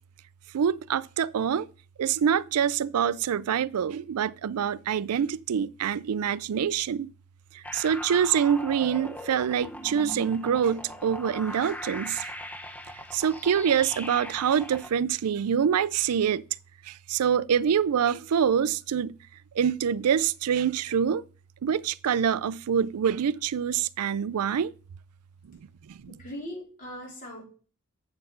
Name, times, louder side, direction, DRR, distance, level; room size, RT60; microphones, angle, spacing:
voice 1, 0.5-1.7 2.0-7.1 7.5-12.3 13.1-16.4 16.9-19.2 19.5-21.2 21.6-24.7 25.5-25.6 25.9-26.1, right 8 dB, 85° right, 0.4 m, -25 dB
sound 1, 7.6-14.9, equal, 5° left, 0.8 m, -40 dB
voice 2, 26.1-27.4, equal, 40° left, 4.2 m, -39 dB
7.8 x 6.5 x 5.6 m
head